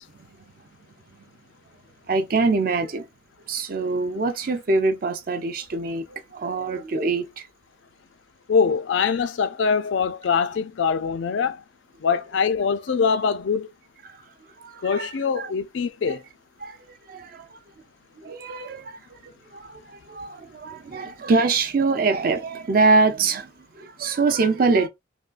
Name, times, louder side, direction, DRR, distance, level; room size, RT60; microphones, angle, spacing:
voice 1, 2.1-3.0 3.5-7.5 14.0-14.2 14.6-15.5 16.1-16.2 16.6-16.8 17.1-17.6 18.2-19.2 19.5-24.9, right 3 dB, 45° right, 0.4 m, -24 dB
voice 2, 8.5-11.6 12.0-13.7 14.8-16.2 21.0-21.1, left 6 dB, 70° left, 0.4 m, -23 dB
3.5 x 2.2 x 2.4 m
head